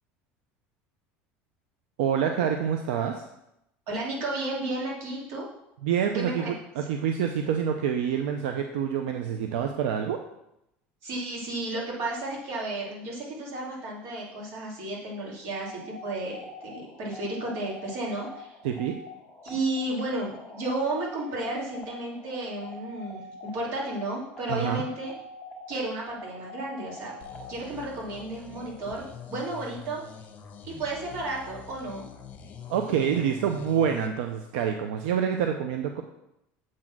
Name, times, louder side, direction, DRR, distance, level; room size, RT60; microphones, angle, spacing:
voice 1, 2.0-3.2 5.8-10.2 18.6-19.0 24.5-24.8 32.7-36.0, right 8 dB, 90° right, 5 dB, 0.6 m, -27 dB
voice 2, 3.9-5.5 6.1-6.5 11.0-18.5 19.4-25.1 25.7-27.1 27.5-30.0 30.6-32.1, right 2 dB, 60° right, -3 dB, 2.7 m, -33 dB
sound 1, 15.7-27.7, right 1 dB, 5° left, 1.8 m, -45 dB
sound 2, 27.2-34.1, left 7 dB, 35° left, 1.1 m, -45 dB
7.5 x 4.1 x 6.0 m, 0.85 s
cardioid pair, 135°, 5 cm